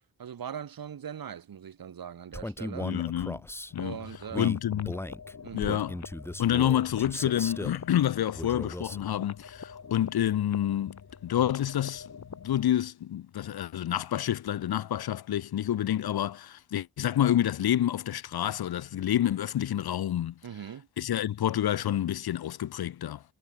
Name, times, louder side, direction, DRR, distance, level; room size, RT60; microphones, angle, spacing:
voice 1, 0.2-3.0 3.8-4.6 5.4-5.8 20.4-20.9, right 8 dB, 70° right, 1.6 m, -40 dB
Male speech man speaking, 2.3-3.7 4.3-7.8 8.3-9.1, left 1 dB, 5° left, 1.4 m, -37 dB
voice 2, 2.8-3.4 3.7-4.0 4.4-4.9 5.5-6.0 6.4-12.0 12.4-20.3 21.0-23.2, left 11 dB, 85° left, 0.7 m, -28 dB
sound 1, 3.7-12.7, left 6 dB, 50° left, 3.8 m, -46 dB
wide cardioid pair, 155°, 37 cm